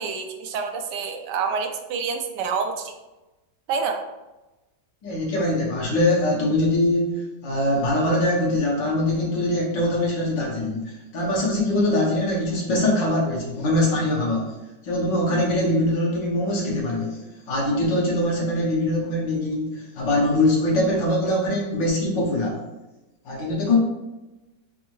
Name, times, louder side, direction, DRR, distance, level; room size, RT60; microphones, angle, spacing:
voice 1, 0.0-2.9 3.7-4.0, right 5 dB, 75° right, 5 dB, 1.2 m, -27 dB
voice 2, 5.0-14.6 14.8-17.2 17.5-22.6 23.3-23.8, left 1 dB, 80° left, -3 dB, 1.8 m, -23 dB
5.5 x 2.6 x 3.1 m, 1.0 s
omnidirectional pair, 1.9 m